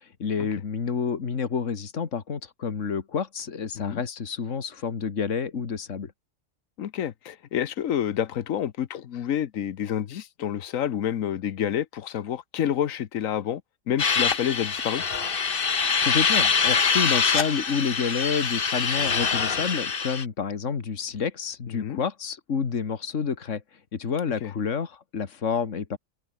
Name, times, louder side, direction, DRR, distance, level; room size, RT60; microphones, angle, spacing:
voice 1, 0.0-6.1 16.0-23.6 23.9-26.0, left 6 dB, 70° left, 2.0 m, -29 dB
voice 2, 6.8-13.6 13.9-15.0 21.7-22.0 24.4-24.5, left 10 dB, 85° left, 1.3 m, -28 dB
sound 1, 14.0-20.2, left 6 dB, 45° left, 1.4 m, -24 dB
omnidirectional pair, 1.3 m